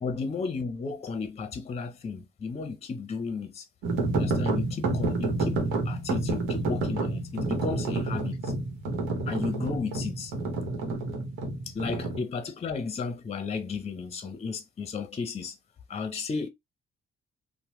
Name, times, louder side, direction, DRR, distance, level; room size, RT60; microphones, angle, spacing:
voice 1, 0.0-3.7 4.2-5.6 5.8-8.5 9.3-10.3 11.7-15.6 15.9-16.5, left 4 dB, 30° left, 0.6 m, -34 dB
sound 1, 3.8-12.2, right 2 dB, 85° right, 1.0 m, -29 dB
3.0 x 2.1 x 3.0 m
cardioid pair, 90°, 20 cm